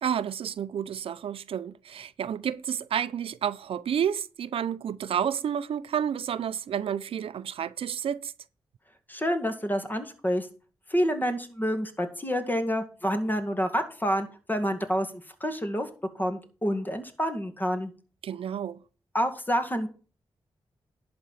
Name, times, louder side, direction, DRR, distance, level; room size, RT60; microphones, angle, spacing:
voice 1, 0.0-8.3 18.2-18.8, right 8 dB, 80° right, 0.5 m, -30 dB
voice 2, 9.1-10.5 10.9-15.9 16.2-17.9 19.1-19.9, equal, 20° left, 2.0 m, -28 dB
11.0 x 4.4 x 7.2 m
cardioid pair, 70°, 9 cm